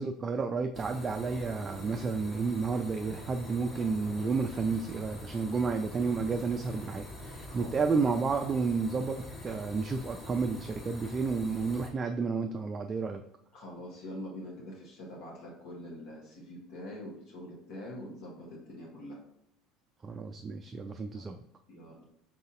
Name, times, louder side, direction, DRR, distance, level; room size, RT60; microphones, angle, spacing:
voice 1, 0.0-13.2 20.0-21.4, right 4 dB, 30° right, 5 dB, 0.3 m, -31 dB
sound 1, 0.7-11.9, left 1 dB, 25° left, 1.2 m, -45 dB
voice 2, 7.4-7.9 13.5-19.2 21.1-21.2 21.7-22.0, left 1 dB, 60° left, -3 dB, 1.1 m, -44 dB
4.2 x 3.9 x 2.5 m, 0.76 s
figure-of-eight pair, 65°, 0 cm